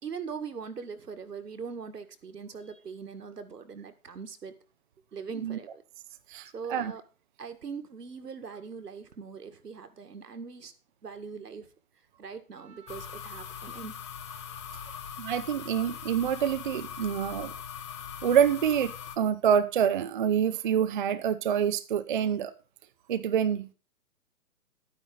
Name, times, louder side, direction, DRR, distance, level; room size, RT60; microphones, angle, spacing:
voice 1, 0.0-4.6 5.1-5.8 6.5-7.0 7.4-10.7 11.0-11.7 12.2-14.0 14.3-15.1, right 5 dB, 80° right, 1.8 m, -41 dB
voice 2, 6.3-6.9 15.2-17.5 18.2-22.5 23.1-23.7, right 8 dB, 35° right, 0.5 m, -26 dB
sound 1, 12.9-19.2, left 8 dB, 20° left, 0.6 m, -41 dB
11.5 x 9.4 x 3.9 m
figure-of-eight pair, 135°, 47 cm